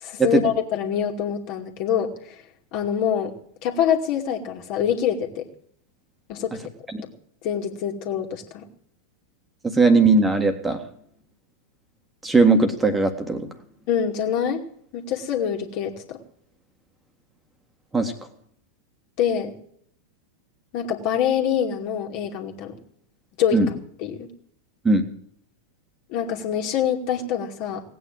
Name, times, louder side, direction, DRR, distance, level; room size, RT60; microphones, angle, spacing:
voice 1, 0.0-2.1 2.7-3.3 3.6-5.4 6.3-6.6 7.4-8.7 13.9-14.6 14.9-16.2 19.2-19.6 20.7-22.7 23.4-23.6 24.0-24.3 26.1-27.8, left 8 dB, 45° left, 2 dB, 2.5 m, -25 dB
voice 2, 9.6-10.8 12.2-13.5 17.9-18.1 23.5-23.7 24.8-25.1, right 3 dB, 10° right, 6 dB, 1.8 m, -19 dB
18.0 x 9.4 x 7.6 m, 0.65 s
figure-of-eight pair, 90°, 0 cm